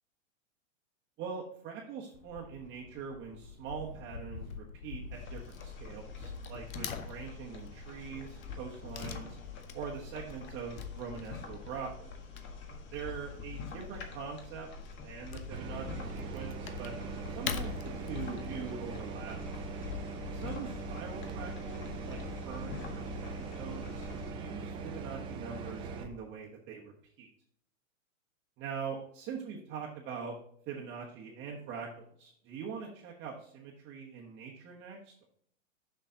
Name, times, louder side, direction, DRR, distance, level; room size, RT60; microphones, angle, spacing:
voice 1, 1.2-9.4 9.7-12.2 12.9-14.7 15.0-16.9 17.3-19.4 20.3-22.2 22.4-27.3 28.6-30.3 30.7-35.3, right 6 dB, 30° right, -3 dB, 1.2 m, -43 dB
Wood / Tearing, 2.1-21.8, left 6 dB, 85° left, 1.1 m, -47 dB
sound 1, 5.1-24.3, left 5 dB, 30° left, 1.4 m, -45 dB
sound 2, 15.5-26.1, right 4 dB, 15° right, 0.4 m, -41 dB
7.0 x 6.1 x 3.8 m, 0.63 s
hypercardioid pair, 140°, 40 cm